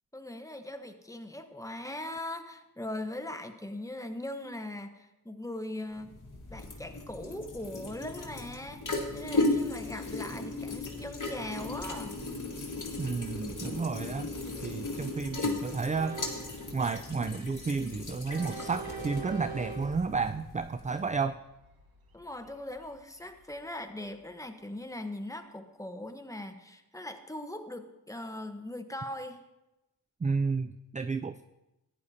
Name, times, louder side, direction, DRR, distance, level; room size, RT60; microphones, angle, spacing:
voice 1, 0.1-6.2 6.5-8.8 9.1-12.2 22.1-29.4, left 1 dB, 10° left, 6 dB, 1.0 m, -40 dB
sound 1, 6.0-21.0, left 2 dB, 55° left, 1.8 m, -36 dB
Train, 11.3-24.3, right 4 dB, 80° right, 1.2 m, -48 dB
voice 2, 13.0-14.3 14.6-16.2 16.7-21.4 30.2-31.4, right 4 dB, 20° right, 11 dB, 0.3 m, -32 dB
14.5 x 9.8 x 2.8 m, 0.97 s
cardioid pair, 40°, 36 cm